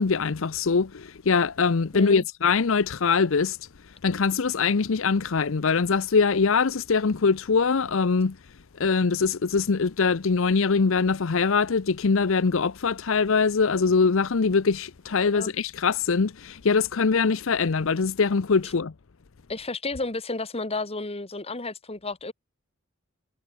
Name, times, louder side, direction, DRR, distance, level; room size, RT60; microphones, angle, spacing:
voice 1, 0.0-3.6 4.0-8.4 8.8-18.9, left 5 dB, 65° left, 0.6 m, -23 dB
voice 2, 1.9-2.2 15.3-15.5 18.6-18.7 19.5-22.3, left 2 dB, 30° left, 1.8 m, -32 dB
head